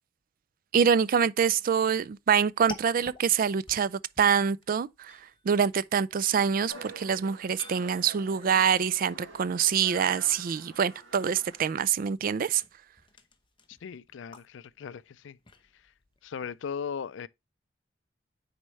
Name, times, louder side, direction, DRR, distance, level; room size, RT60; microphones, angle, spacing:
voice 1, 0.7-5.2 5.4-12.6, right 7 dB, 50° right, 0.4 m, -25 dB
sound 1, 1.5-16.7, left 3 dB, 25° left, 0.9 m, -52 dB
sound 2, 6.7-11.7, right 2 dB, 85° right, 2.1 m, -47 dB
voice 2, 13.7-15.4 16.2-17.3, left 6 dB, 75° left, 0.4 m, -38 dB
9.6 x 4.3 x 3.1 m
head